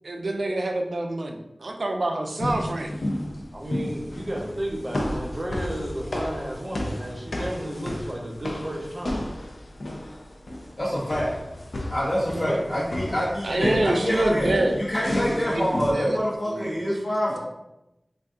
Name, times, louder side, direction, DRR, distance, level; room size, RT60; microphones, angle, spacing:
voice 1, 0.0-2.9 13.4-14.8 15.0-16.2 16.5-16.7, right 2 dB, 85° right, 3 dB, 0.3 m, -27 dB
sound 1, 2.4-15.9, left 1 dB, 85° left, 0.4 m, -32 dB
voice 2, 3.5-9.2 12.3-12.6, right 1 dB, 50° right, -1 dB, 0.7 m, -32 dB
voice 3, 10.8-11.3 11.9-17.4, equal, 65° left, -10 dB, 0.7 m, -26 dB
2.6 x 2.3 x 3.5 m, 0.92 s
wide cardioid pair, 50°, 0 cm